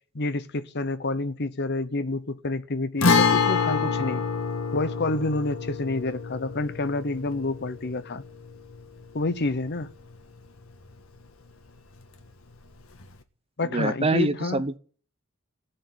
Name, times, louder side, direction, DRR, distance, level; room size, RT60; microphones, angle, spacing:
voice 1, 0.1-4.2 4.7-8.2 9.1-9.9 13.6-14.7, left 2 dB, 55° left, 0.9 m, -28 dB
Guitar, 3.0-10.6 10.9-11.0 13.0-13.1, left 5 dB, 75° left, 1.6 m, -27 dB
voice 2, 13.7-14.8, right 2 dB, 30° right, 0.8 m, -25 dB
17.0 x 6.7 x 9.5 m
head